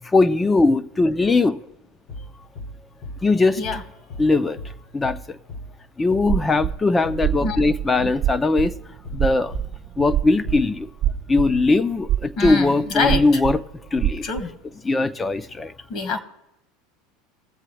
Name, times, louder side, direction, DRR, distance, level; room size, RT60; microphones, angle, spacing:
voice 1, 0.0-1.6 3.2-3.6 4.2-4.6 4.9-5.4 6.0-8.8 9.1-9.5 10.0-10.9 11.3-13.6 13.9-14.2 14.8-15.7, left 3 dB, 15° left, 0.6 m, -20 dB
sound 1, 2.1-2.3 2.6-2.8 3.0-3.2 3.6-3.8 4.1-4.3 4.6-4.8 5.0-5.2 5.5-5.7 6.1-6.3 6.6-6.8 7.0-7.2 7.5-7.7 8.0-8.2 8.6-8.8 9.0-9.2 9.5-9.7 10.0-10.2 10.4-10.6 11.1-11.3 11.5-11.7, left 1 dB, 70° left, 2.1 m, -36 dB
sound 2, 6.2-6.8 7.0-14.4, right 12 dB, 45° right, 0.4 m, -25 dB
voice 2, 12.4-13.2 14.2-14.5 15.9-16.2, left 4 dB, 50° left, 1.7 m, -25 dB
19.5 x 7.5 x 3.2 m
hypercardioid pair, 95°, 0 cm